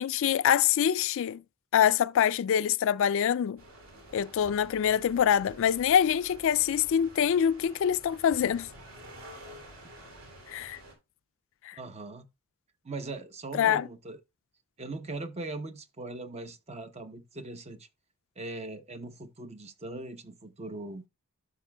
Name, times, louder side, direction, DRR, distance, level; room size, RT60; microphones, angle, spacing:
voice 1, 0.0-1.4 1.7-3.6 4.1-8.7 10.5-10.8 11.6-11.8 13.5-13.9, left 9 dB, 65° left, 0.3 m, -25 dB
sound 1, 3.6-10.9, right 1 dB, 65° right, 3.2 m, -50 dB
voice 2, 11.7-12.2 12.8-14.2 14.8-17.9 18.4-21.0, right 2 dB, 30° right, 0.7 m, -40 dB
11.5 x 6.0 x 2.2 m
head